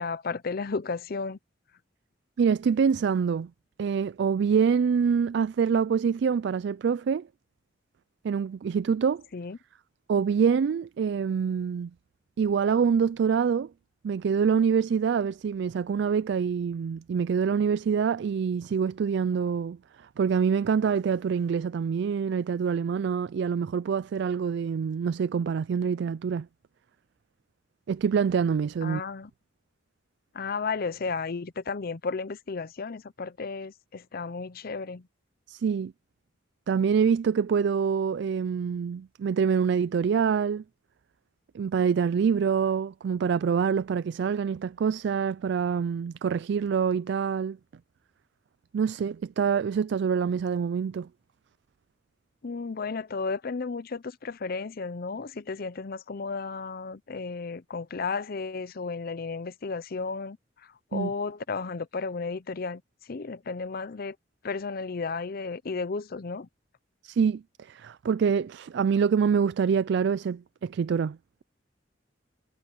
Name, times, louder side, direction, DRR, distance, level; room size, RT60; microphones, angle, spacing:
voice 1, 0.0-1.4 9.3-9.6 28.8-29.3 30.3-35.1 52.4-64.2 64.4-66.5, left 4 dB, 50° left, 0.6 m, -33 dB
voice 2, 2.4-3.5 3.8-7.3 8.2-9.2 10.1-11.9 12.4-13.7 14.0-26.5 27.9-29.0 35.5-35.9 36.7-40.6 41.5-47.6 48.7-51.1 60.9-61.1 67.0-71.2, right 6 dB, 65° right, 0.3 m, -26 dB
head